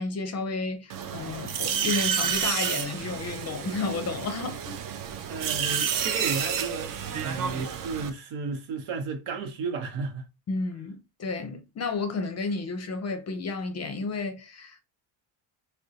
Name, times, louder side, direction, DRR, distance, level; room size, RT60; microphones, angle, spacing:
voice 1, 0.0-4.8 10.5-14.8, left 3 dB, 35° left, 0.5 m, -32 dB
sound 1, 0.9-8.1, right 8 dB, 45° right, 0.5 m, -30 dB
voice 2, 5.3-6.9 7.2-10.3, right 4 dB, 80° right, 0.9 m, -33 dB
3.6 x 2.2 x 2.6 m
cardioid pair, 120°, 47 cm